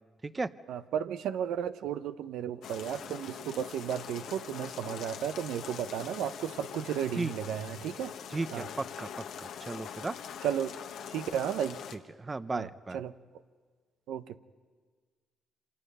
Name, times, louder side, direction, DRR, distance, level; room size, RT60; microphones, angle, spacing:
voice 1, 0.7-8.1 8.5-8.7 10.4-10.7 11.1-11.8 12.5-12.7 12.9-13.1 14.1-14.4, right 9 dB, 85° right, 11 dB, 0.7 m, -34 dB
sound 1, 2.6-12.0, left 8 dB, 80° left, 1.4 m, -43 dB
voice 2, 8.3-9.1 9.4-10.2 12.2-13.0, right 3 dB, 25° right, 14 dB, 0.7 m, -35 dB
27.5 x 25.5 x 5.5 m, 1.5 s
cardioid pair, 90°, 0 cm